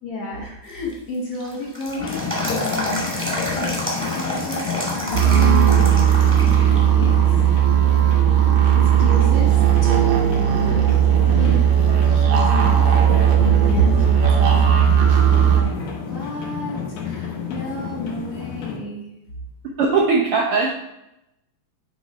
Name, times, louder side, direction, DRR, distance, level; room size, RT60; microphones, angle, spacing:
voice 1, 0.0-3.1 3.5-7.5 8.8-10.8 11.3-15.7 16.1-19.1, left 1 dB, 55° left, -9 dB, 2.5 m, -30 dB
sound 1, 0.7-6.8 7.2-7.3 8.0-8.5 9.0-9.1 9.6-10.8 11.1-11.2 14.6-14.7 17.7-17.8, equal, 5° right, 1.3 m, -29 dB
sound 2, 2.0-18.8, left 6 dB, 80° left, 2.7 m, -31 dB
sound 3, 5.1-15.6, right 10 dB, 65° right, 1.5 m, -16 dB
voice 2, 19.8-20.7, right 4 dB, 80° right, -1 dB, 1.2 m, -19 dB
8.5 x 4.2 x 4.7 m, 0.87 s
omnidirectional pair, 3.6 m